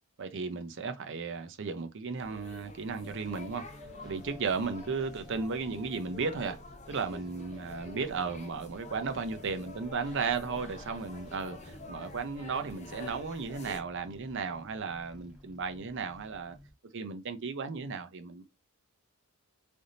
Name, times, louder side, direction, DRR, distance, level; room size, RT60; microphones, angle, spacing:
voice 1, 0.2-3.6 4.0-6.6 6.9-16.6 16.9-18.4, right 4 dB, 55° right, 0.6 m, -35 dB
sound 1, 2.2-13.8, left 2 dB, 30° left, 0.6 m, -48 dB
sound 2, 3.0-16.7, left 2 dB, 5° right, 1.1 m, -53 dB
3.4 x 2.6 x 3.9 m
head